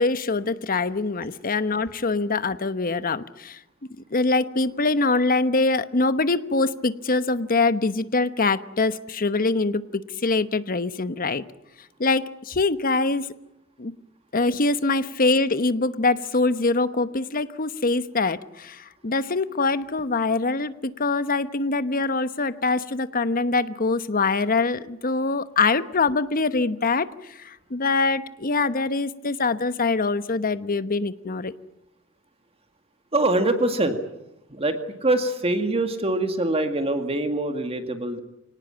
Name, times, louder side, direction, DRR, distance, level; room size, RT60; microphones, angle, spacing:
voice 1, 0.0-3.6 4.1-9.8 10.2-11.4 12.0-13.3 13.8-13.9 14.3-31.5, left 3 dB, 45° left, 13 dB, 1.0 m, -24 dB
voice 2, 33.1-34.0 34.5-38.2, right 2 dB, 30° right, 7 dB, 2.0 m, -24 dB
25.5 x 18.5 x 8.8 m, 0.89 s
head